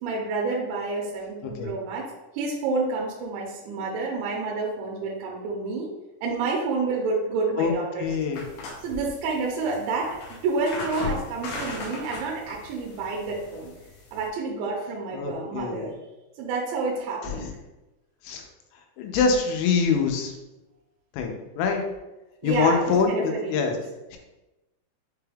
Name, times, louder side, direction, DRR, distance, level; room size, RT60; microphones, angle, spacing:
voice 1, 0.0-2.1 2.3-5.9 6.2-8.1 8.8-13.7 14.1-15.9 16.4-17.5 22.4-23.8, right 3 dB, 85° right, -1 dB, 3.0 m, -29 dB
voice 2, 8.0-8.4 15.1-15.9 17.2-17.5 18.2-18.5 19.0-20.3 21.1-21.8 22.4-23.8 24.1-24.2, left 5 dB, 90° left, 3 dB, 3.0 m, -25 dB
sound 1, 8.3-14.3, left 4 dB, 75° left, 2.4 m, -37 dB
6.8 x 2.3 x 3.3 m, 1.0 s
omnidirectional pair, 5.1 m